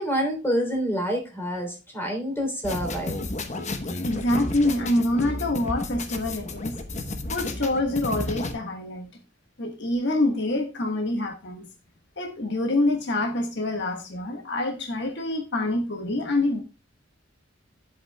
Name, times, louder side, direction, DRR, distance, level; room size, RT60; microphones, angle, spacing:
voice 1, 0.0-3.1, equal, 10° left, 2 dB, 3.2 m, -27 dB
sound 1, 2.6-8.5, left 2 dB, 35° left, 1.0 m, -32 dB
voice 2, 4.0-6.8 7.3-9.1 9.6-11.7 12.2-16.6, left 1 dB, 60° left, 3 dB, 1.5 m, -26 dB
10.0 x 8.1 x 2.2 m, 0.31 s
head